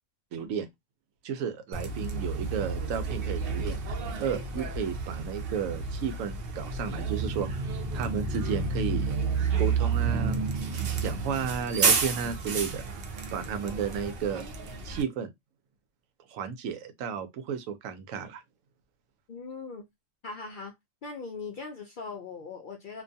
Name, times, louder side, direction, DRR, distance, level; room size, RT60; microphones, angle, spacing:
voice 1, 0.3-0.7 1.2-7.6 7.9-9.1 9.6-10.4 11.0-12.8 13.3-14.4 14.8-15.3 16.3-18.4, right 7 dB, 90° right, 1.0 m, -33 dB
Bus, 1.7-15.0, right 5 dB, 60° right, 0.7 m, -30 dB
voice 2, 19.3-19.8 20.2-20.7 21.0-23.0, left 4 dB, 65° left, 0.5 m, -40 dB
2.5 x 2.2 x 2.6 m
omnidirectional pair, 1.3 m